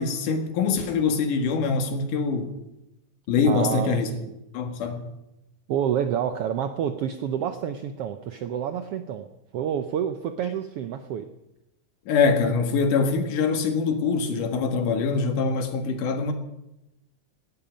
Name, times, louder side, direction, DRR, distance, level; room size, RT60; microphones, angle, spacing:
voice 1, 0.0-2.5 3.3-4.1 4.5-5.1 12.1-16.3, left 5 dB, 85° left, 6 dB, 3.2 m, -24 dB
voice 2, 3.4-4.3 5.7-9.3 9.5-11.3, right 9 dB, 80° right, 8 dB, 1.3 m, -28 dB
18.0 x 13.0 x 5.1 m, 0.91 s
omnidirectional pair, 3.5 m